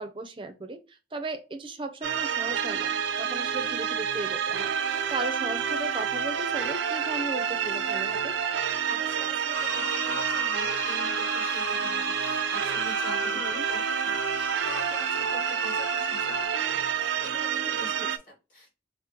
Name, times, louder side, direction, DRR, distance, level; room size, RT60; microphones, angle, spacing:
voice 1, 0.0-8.4 13.3-13.7 18.0-18.1, right 2 dB, 30° right, 8 dB, 0.5 m, -37 dB
sound 1, 2.0-18.2, right 7 dB, 80° right, 0.4 m, -28 dB
voice 2, 8.5-18.7, left 1 dB, 45° left, -3 dB, 1.8 m, -45 dB
sound 2, 9.5-16.5, left 2 dB, 20° left, 0.7 m, -36 dB
5.0 x 2.0 x 2.8 m, 0.30 s
head